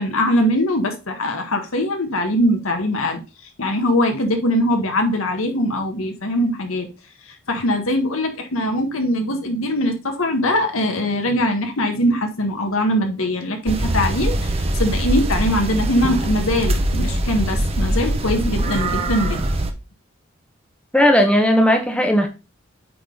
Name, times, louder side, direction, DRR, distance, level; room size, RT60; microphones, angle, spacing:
voice 1, 0.0-3.2 3.6-6.9 7.5-19.4, left 1 dB, 85° left, 1.5 m, -21 dB
sound 1, 13.7-19.7, right 1 dB, 30° right, 0.7 m, -22 dB
voice 2, 20.9-22.3, equal, 5° left, 0.9 m, -16 dB
8.5 x 3.7 x 3.9 m
head